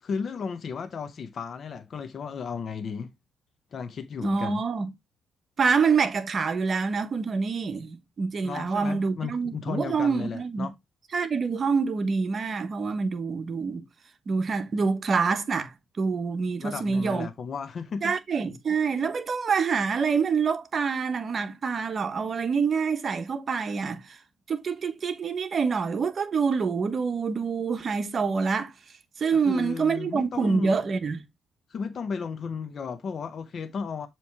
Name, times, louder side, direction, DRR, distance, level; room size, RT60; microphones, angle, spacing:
voice 1, 0.0-3.1 3.7-4.6 8.4-10.7 16.6-18.2 29.3-30.7 31.7-34.1, left 5 dB, 50° left, 0.7 m, -34 dB
voice 2, 4.2-4.9 5.6-10.7 11.1-13.8 14.3-17.3 18.0-24.2 24.5-28.7 29.2-31.2, right 5 dB, 45° right, 1.0 m, -26 dB
7.2 x 3.1 x 4.6 m
cardioid pair, 90°, 0 cm